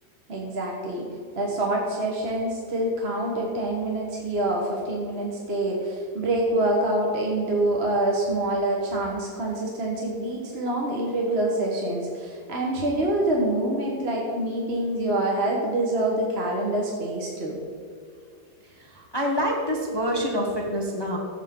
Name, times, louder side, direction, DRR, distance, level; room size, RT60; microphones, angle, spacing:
voice 1, 0.3-1.1 1.3-17.6, right 1 dB, 40° right, -2 dB, 1.4 m, -26 dB
voice 2, 18.8-21.2, equal, 20° left, -1 dB, 1.0 m, -26 dB
14.0 x 8.2 x 3.7 m, 2.3 s
omnidirectional pair, 1.7 m